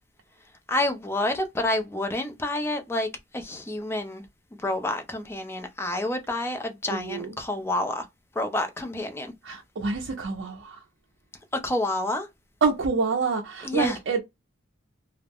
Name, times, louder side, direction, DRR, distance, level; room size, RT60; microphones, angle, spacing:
voice 1, 0.7-4.2 4.6-8.1 8.3-9.3 11.5-12.3 13.6-14.0, left 1 dB, 10° left, 0.4 m, -28 dB
voice 2, 6.9-7.3 9.4-10.8 12.6-14.2, right 4 dB, 60° right, 0.4 m, -27 dB
2.3 x 2.0 x 3.3 m
head